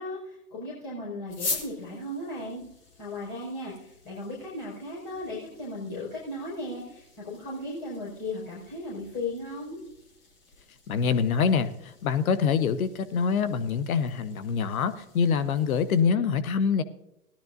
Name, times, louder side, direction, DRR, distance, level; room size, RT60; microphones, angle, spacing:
voice 1, 0.0-2.6 3.0-9.8, left 1 dB, 40° left, -6 dB, 5.5 m, -36 dB
sound 1, 1.3-16.0, left 3 dB, 25° left, 2.3 m, -44 dB
voice 2, 10.9-16.8, left 6 dB, 65° left, 13 dB, 1.0 m, -25 dB
17.5 x 12.0 x 2.7 m, 0.86 s
hypercardioid pair, 125°, 45 cm